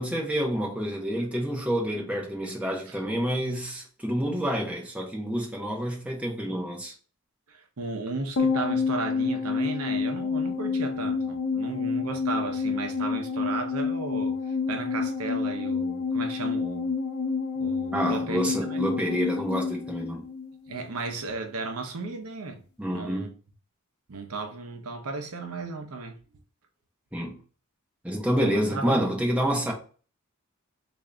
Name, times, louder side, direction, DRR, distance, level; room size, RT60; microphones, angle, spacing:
voice 1, 0.0-6.9 17.9-20.2 22.8-23.3 27.1-27.4 28.0-29.7, equal, 5° right, 0.8 m, -28 dB
voice 2, 7.5-16.9 17.6-18.9 20.7-22.6 22.9-23.3 24.1-26.2 28.4-29.1, right 3 dB, 80° right, 0.7 m, -35 dB
sound 1, 8.4-20.9 21.1-21.2, left 5 dB, 75° left, 0.7 m, -28 dB
3.7 x 2.6 x 3.3 m
head